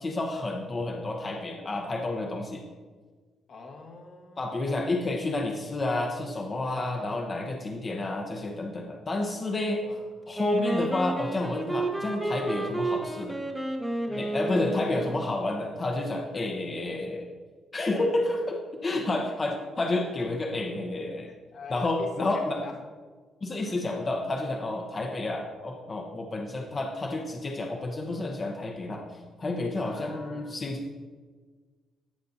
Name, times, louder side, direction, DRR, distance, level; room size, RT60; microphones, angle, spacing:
voice 1, 0.0-2.6 4.4-9.8 10.3-13.4 14.1-17.3 17.7-21.3 21.7-22.6 23.4-30.9, left 2 dB, 35° left, 1 dB, 0.8 m, -30 dB
voice 2, 3.5-5.0 7.1-7.7 9.8-10.1 10.5-10.8 14.0-14.4 16.3-16.5 18.9-19.2 20.2-20.3 21.3-22.8 23.6-23.8 29.8-30.6, left 3 dB, 60° left, 1 dB, 1.3 m, -45 dB
Wind instrument woodwind instrument, 10.3-15.3, right 2 dB, 10° right, 0.9 m, -31 dB
15.0 x 5.2 x 2.7 m, 1.5 s
cardioid pair, 90°, 0 cm